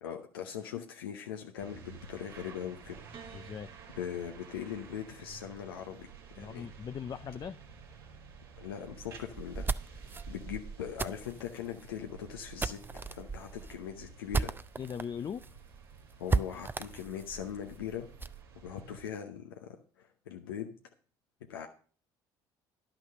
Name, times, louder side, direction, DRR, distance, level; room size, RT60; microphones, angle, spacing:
voice 1, 0.0-3.0 4.0-6.1 6.3-6.7 8.6-9.7 10.0-14.5 16.2-18.1 18.6-20.7 21.5-21.7, left 9 dB, 85° left, 4 dB, 0.8 m, -41 dB
sound 1, 1.6-19.1, right 6 dB, 90° right, 1.9 m, -52 dB
Piano, 3.1-7.6 8.6-9.4, right 5 dB, 55° right, 1.5 m, -58 dB
voice 2, 3.3-3.7 6.4-7.6 14.8-15.4, left 7 dB, 35° left, 12 dB, 0.4 m, -39 dB
sound 2, 9.4-15.1 15.4-15.5 15.8-15.9 16.3-18.4, right 4 dB, 15° right, 0.5 m, -35 dB
10.5 x 6.0 x 6.4 m, 0.41 s
hypercardioid pair, 60°, 12 cm